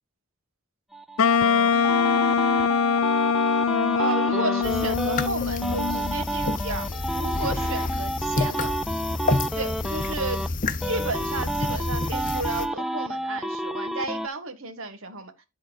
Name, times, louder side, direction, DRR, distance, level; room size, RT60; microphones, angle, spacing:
sound 1, 0.9-5.3 5.6-10.5 10.8-14.3, right 1 dB, ahead, 0.3 m, -30 dB
Wind instrument woodwind instrument, 1.2-6.2, left 6 dB, 70° left, 0.5 m, -23 dB
voice 1, 3.9-8.8 9.5-10.4 10.8-15.3, right 2 dB, 65° right, 1.5 m, -33 dB
sound 2, 4.6-12.7, left 3 dB, 35° left, 0.9 m, -29 dB
11.0 x 3.9 x 4.2 m
head